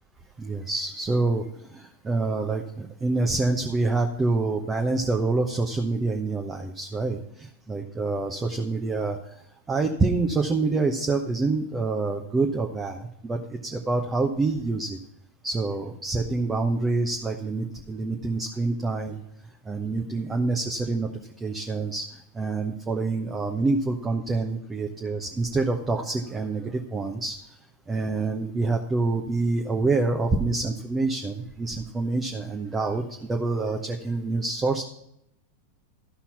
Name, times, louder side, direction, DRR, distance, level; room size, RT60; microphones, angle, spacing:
voice 1, 0.4-9.3 9.7-15.0 15.4-19.2 19.6-21.1 21.4-27.4 27.9-34.8, right 3 dB, 15° right, 3 dB, 1.0 m, -27 dB
13.5 x 5.8 x 5.7 m, 0.78 s
figure-of-eight pair, 90°, 0 cm